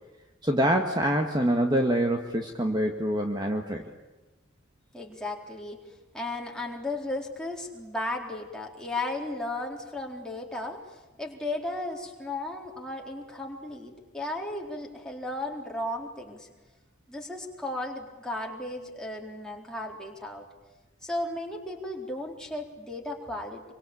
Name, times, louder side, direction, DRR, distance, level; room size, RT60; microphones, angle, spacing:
voice 1, 0.4-3.9, right 1 dB, 20° right, 3 dB, 1.8 m, -25 dB
voice 2, 4.9-5.8 6.1-16.5 17.1-20.5 21.0-23.6, left 2 dB, 5° left, -1 dB, 4.1 m, -35 dB
26.5 x 24.5 x 8.7 m, 1.1 s
head